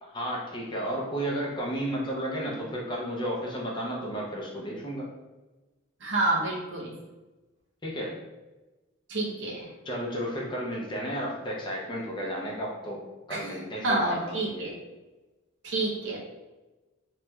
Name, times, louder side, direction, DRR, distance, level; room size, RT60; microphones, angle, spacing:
voice 1, 0.0-5.1 7.8-8.2 9.8-13.0 13.3-14.7, equal, 25° left, -2 dB, 0.5 m, -33 dB
voice 2, 6.0-6.9 9.1-9.7 13.3-13.4 13.8-14.7 15.6-16.2, right 2 dB, 60° right, -2 dB, 0.7 m, -28 dB
3.1 x 3.0 x 2.2 m, 1.1 s
head